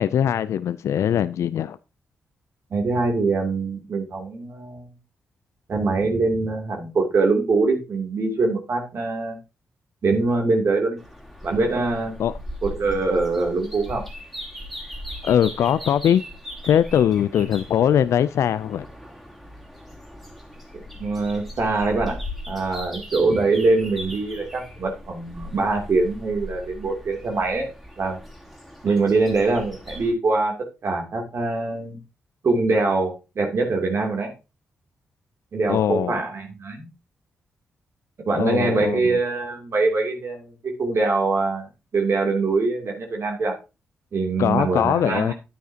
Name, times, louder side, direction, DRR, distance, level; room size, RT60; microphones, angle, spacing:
voice 1, 0.0-1.8 12.2-12.3 15.2-16.2 16.6-18.9 35.7-36.2 38.3-39.2 44.4-45.3, left 9 dB, 75° left, 0.3 m, -21 dB
voice 2, 2.7-4.9 5.7-9.4 10.0-11.0 11.4-12.1 12.6-14.0 21.0-22.2 22.5-27.7 28.0-28.2 28.8-30.6 30.8-32.0 32.4-34.3 35.5-36.9 38.2-41.7 41.9-43.6 44.1-45.3, right 3 dB, 60° right, 2.6 m, -23 dB
sound 1, 11.0-30.1, left 1 dB, ahead, 2.9 m, -39 dB
9.3 x 9.3 x 2.8 m
cardioid pair, 60°, 5 cm